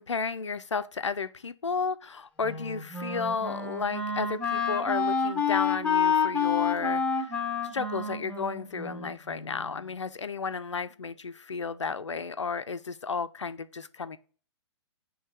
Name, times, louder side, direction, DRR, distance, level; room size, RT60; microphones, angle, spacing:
voice 1, 0.0-7.3 7.6-14.2, left 5 dB, 80° left, 0.5 m, -33 dB
Wind instrument woodwind instrument, 2.4-9.6, left 5 dB, 10° left, 1.0 m, -29 dB
6.2 x 3.2 x 4.9 m
figure-of-eight pair, 120°, 15 cm